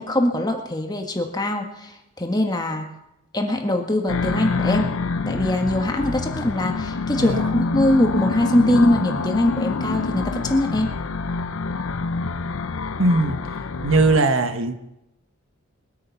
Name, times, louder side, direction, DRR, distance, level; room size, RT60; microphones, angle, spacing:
voice 1, 0.0-2.9 3.3-5.0 5.3-11.0, left 1 dB, 20° left, 3 dB, 1.5 m, -22 dB
sound 1, 4.1-14.2, left 4 dB, 70° left, 0.6 m, -26 dB
voice 2, 7.2-7.5 13.0-13.4 13.8-14.7, right 3 dB, 70° right, 8 dB, 1.2 m, -19 dB
22.0 x 8.7 x 5.8 m, 0.88 s
head